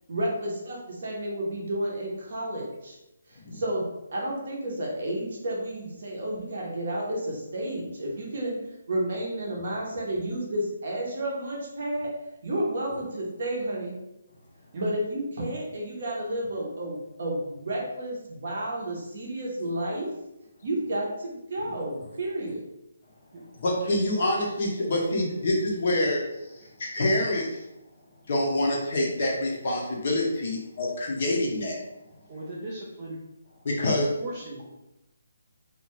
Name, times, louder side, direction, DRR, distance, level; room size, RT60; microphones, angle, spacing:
voice 1, 0.1-3.0 3.3-8.5 8.9-12.1 12.4-13.9 14.7-20.1 20.6-22.6, right 1 dB, 40° right, -2 dB, 0.7 m, -31 dB
voice 2, 23.6-26.2 26.8-27.6 28.3-31.8 33.6-34.1, left 1 dB, 35° left, -1 dB, 0.5 m, -26 dB
voice 3, 32.3-33.2 33.9-34.6, right 1 dB, 25° right, -6 dB, 0.3 m, -39 dB
2.6 x 2.1 x 3.0 m, 0.92 s
hypercardioid pair, 180°, 0 cm